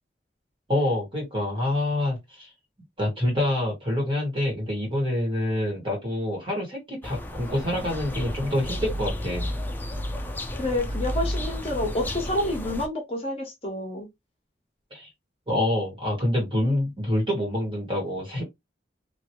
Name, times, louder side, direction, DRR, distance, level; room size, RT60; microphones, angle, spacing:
voice 1, 0.7-2.5 3.0-9.5 14.9-15.1 15.5-18.4, left 1 dB, 30° right, 1.6 m, -26 dB
sound 1, 7.0-12.9, left 1 dB, 10° left, 0.4 m, -32 dB
voice 2, 10.5-14.1, left 1 dB, 35° left, 1.2 m, -28 dB
3.0 x 2.7 x 2.8 m
head